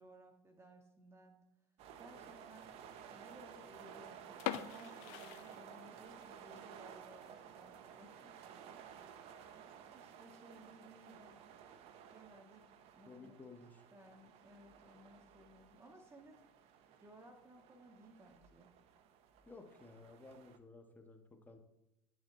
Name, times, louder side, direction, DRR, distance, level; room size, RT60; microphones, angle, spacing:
voice 1, 0.0-1.4 2.0-8.3 9.3-11.4 12.1-12.7 12.9-13.4 13.9-16.4 17.0-18.7, right 1 dB, 20° right, 2 dB, 0.8 m, -60 dB
sound 1, 1.8-20.6, right 8 dB, 50° right, 0.6 m, -55 dB
sound 2, 4.4-6.2 6.6-6.7 7.2-7.4 7.8-7.9 8.1-8.2 9.0-9.3, left 12 dB, 55° left, 0.4 m, -43 dB
voice 2, 13.1-13.8 19.5-21.6, left 3 dB, 15° left, 5 dB, 0.9 m, -55 dB
9.3 x 4.3 x 3.0 m, 0.88 s
hypercardioid pair, 70°, 13 cm